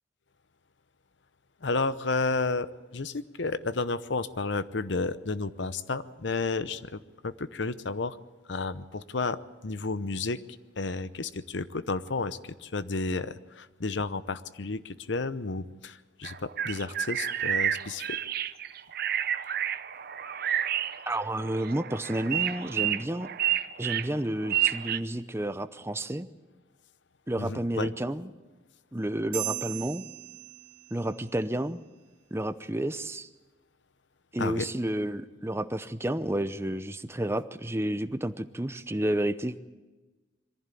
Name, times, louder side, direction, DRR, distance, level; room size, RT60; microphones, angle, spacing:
voice 1, 1.6-2.7 2.9-8.2 8.5-10.4 10.8-18.2 27.4-27.9 34.4-34.7, left 3 dB, 65° left, 14 dB, 0.8 m, -32 dB
sound 1, 16.2-25.0, right 10 dB, 50° right, 0.7 m, -30 dB
voice 2, 21.1-23.3 23.8-26.3 27.3-28.3 28.9-30.0 30.9-31.8 32.3-33.3 34.3-39.6, right 1 dB, 15° right, 12 dB, 0.7 m, -31 dB
sound 2, 29.3-31.2, right 13 dB, 80° right, 2.6 m, -37 dB
22.5 x 15.0 x 8.4 m, 1.2 s
head